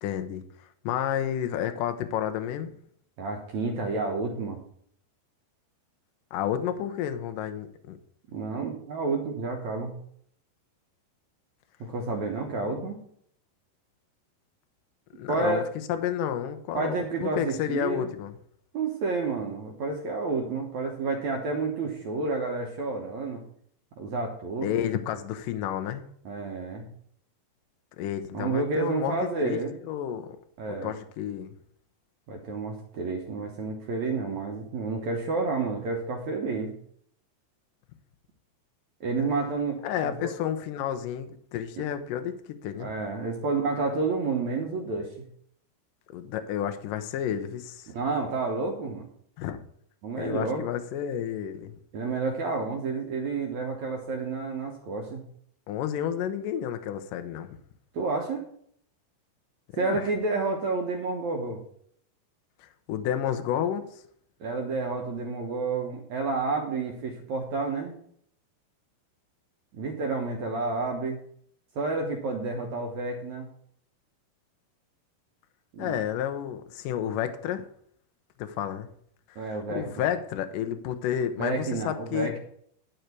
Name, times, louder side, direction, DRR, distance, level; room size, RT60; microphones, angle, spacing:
voice 1, 0.0-2.8 6.3-8.0 12.6-12.9 15.2-15.6 15.9-18.3 24.6-26.1 28.0-29.1 29.4-30.4 30.7-31.5 39.8-42.9 46.1-47.9 49.4-49.6 50.2-51.8 55.7-57.5 59.7-60.0 62.6-64.0 75.8-77.6 78.4-78.9 79.3-82.3, left 10 dB, 90° left, 8 dB, 1.9 m, -31 dB
voice 2, 3.2-4.6 8.3-10.0 11.8-13.0 15.3-15.6 16.7-18.1 18.7-23.4 24.0-24.7 26.2-26.9 28.3-29.7 30.6-30.9 32.3-36.7 39.0-40.3 41.8-41.9 42.8-45.2 47.9-49.1 50.0-50.6 51.9-55.2 57.9-58.4 59.8-61.6 64.4-67.9 69.7-71.2 71.7-73.5 75.7-75.9 79.3-80.0 81.4-82.4, right 3 dB, 75° right, 2 dB, 1.7 m, -30 dB
12.0 x 4.5 x 8.1 m, 0.65 s
omnidirectional pair, 5.0 m